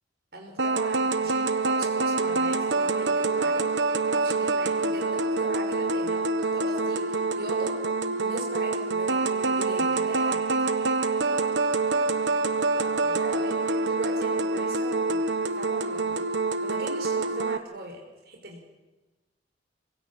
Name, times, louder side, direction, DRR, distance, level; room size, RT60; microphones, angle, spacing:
voice 1, 0.3-7.7 8.2-10.7 12.7-15.3 15.5-16.2 16.6-18.6, right 1 dB, 60° right, 0 dB, 5.5 m, -40 dB
sound 1, 0.6-17.6, right 3 dB, 75° right, 1.4 m, -26 dB
27.0 x 17.0 x 8.6 m, 1.2 s
head